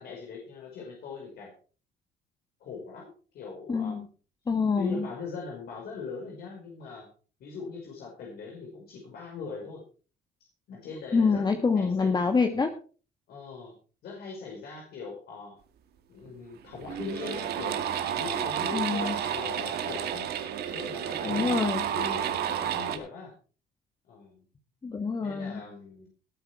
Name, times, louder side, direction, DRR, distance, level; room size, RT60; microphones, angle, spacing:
voice 1, 0.0-1.5 2.6-4.1 4.8-7.1 7.4-9.8 10.7-12.1 13.3-13.7 14.0-15.6 16.1-17.8 18.1-20.3 20.7-23.3 24.1-24.4 25.2-26.1, left 4 dB, 65° left, -1 dB, 5.1 m, -40 dB
voice 2, 3.7-4.0 4.5-5.1 11.1-12.7 18.7-19.2 21.2-21.8 24.8-25.6, left 4 dB, 25° left, 6 dB, 1.6 m, -26 dB
sound 1, 16.3-16.4 16.7-23.0, right 9 dB, 70° right, 2.4 m, -31 dB
19.0 x 8.2 x 4.6 m, 0.38 s
cardioid pair, 110°, 17 cm